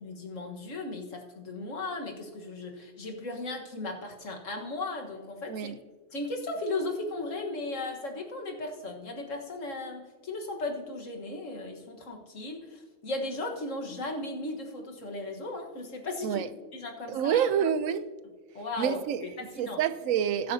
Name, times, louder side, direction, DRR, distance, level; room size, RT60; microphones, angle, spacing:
voice 1, 0.0-5.7 6.1-16.4 16.7-17.5 18.6-19.8, left 2 dB, 75° left, 1.8 m, -36 dB
voice 2, 5.5-5.8 16.2-16.5 17.1-18.1 18.8-20.5, right 8 dB, 85° right, 1.0 m, -28 dB
20.0 x 7.7 x 2.8 m
omnidirectional pair, 1.3 m